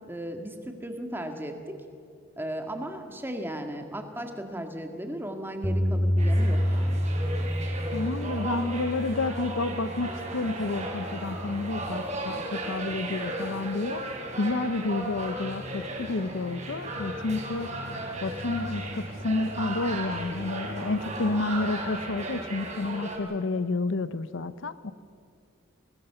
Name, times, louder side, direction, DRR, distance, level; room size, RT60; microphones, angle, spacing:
voice 1, 0.0-1.5 2.4-7.0, right 1 dB, 10° right, 5 dB, 1.8 m, -36 dB
Bass guitar, 5.6-10.1 10.7-11.9, equal, 5° left, 2.1 m, -28 dB
sound 1, 6.2-23.2, right 1 dB, 35° right, 3.9 m, -35 dB
voice 2, 7.9-14.0 14.4-17.7 18.2-24.9, left 3 dB, 65° left, 14 dB, 0.7 m, -30 dB
24.5 x 19.0 x 6.9 m, 2.4 s
head